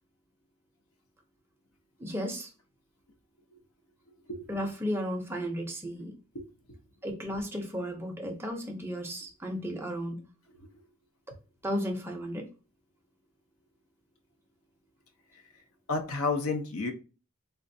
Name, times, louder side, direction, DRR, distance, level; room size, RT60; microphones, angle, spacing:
voice 1, 2.0-2.5 4.5-6.1 7.0-10.3 11.6-12.5, equal, 10° right, 0.5 m, -34 dB
voice 2, 15.9-16.9, left 3 dB, 75° left, 0.7 m, -31 dB
3.4 x 2.4 x 2.6 m
head